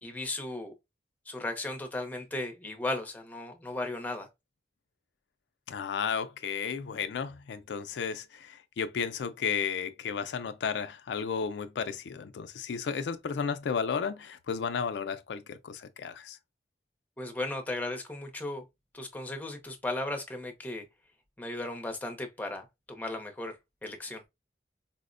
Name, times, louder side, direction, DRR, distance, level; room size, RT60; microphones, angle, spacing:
voice 1, 0.0-0.7 1.3-4.3 17.2-18.6 18.9-20.8 21.4-23.6 23.8-24.2, left 2 dB, 10° left, 0.6 m, -36 dB
voice 2, 5.7-16.4, left 6 dB, 80° left, 0.4 m, -33 dB
4.2 x 2.0 x 2.4 m
head